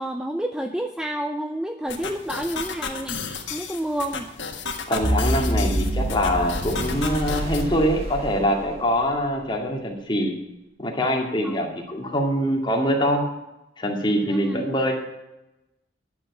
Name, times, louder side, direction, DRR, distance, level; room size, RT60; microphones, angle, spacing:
voice 1, 0.0-3.2 3.5-4.3 11.4-11.6 14.3-14.7, right 1 dB, 5° right, 6 dB, 0.5 m, -29 dB
sound 1, 1.9-7.6, left 5 dB, 70° left, 1.7 m, -33 dB
voice 2, 4.9-10.3 10.8-13.2 13.8-14.9, equal, 25° left, 1 dB, 2.2 m, -24 dB
sound 2, 5.0-9.1, equal, 30° right, 2.1 m, -27 dB
11.0 x 7.3 x 8.2 m, 0.95 s
head